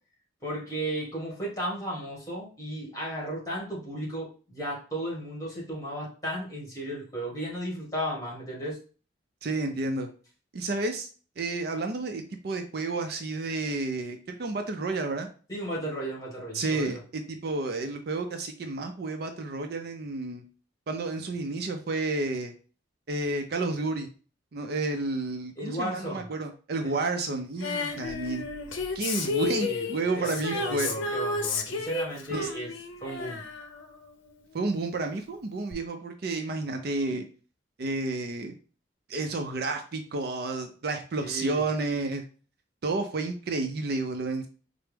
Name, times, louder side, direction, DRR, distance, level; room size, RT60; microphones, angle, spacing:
voice 1, 0.4-8.8 15.5-17.0 25.6-26.3 26.8-27.0 29.6-29.9 30.1-32.7 33.0-33.4 41.1-41.6, right 1 dB, 15° left, -4 dB, 1.4 m, -34 dB
voice 2, 9.4-10.1 10.5-11.1 11.4-15.3 16.5-20.4 20.9-22.5 23.1-24.1 24.5-28.4 28.9-30.9 32.3-32.5 34.5-37.3 37.8-38.6 39.1-42.2 42.8-44.5, right 3 dB, 55° right, 5 dB, 0.4 m, -31 dB
Female singing, 27.6-34.6 35.7-35.8, left 3 dB, 80° left, 0.6 m, -32 dB
4.4 x 2.0 x 3.3 m, 0.38 s
head